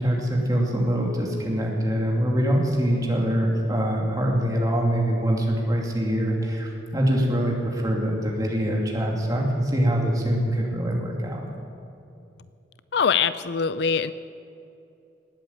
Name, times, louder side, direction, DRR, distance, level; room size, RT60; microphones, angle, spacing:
voice 1, 0.0-11.5, equal, 20° right, -1 dB, 2.7 m, -24 dB
voice 2, 12.9-14.1, left 6 dB, 60° left, 15 dB, 0.4 m, -23 dB
19.0 x 8.5 x 8.6 m, 2.7 s
head